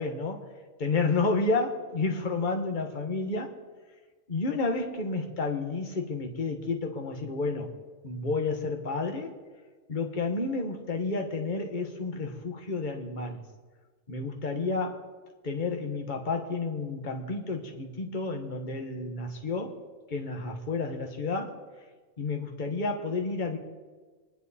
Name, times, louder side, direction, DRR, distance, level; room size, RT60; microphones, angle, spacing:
voice 1, 0.0-0.4 0.8-3.5 4.3-7.7 8.0-9.3 9.9-13.4 14.1-15.0 15.4-19.8 20.1-21.5 22.2-23.6, left 3 dB, 40° left, 3 dB, 1.5 m, -30 dB
25.0 x 10.5 x 4.2 m, 1.4 s
omnidirectional pair, 1.3 m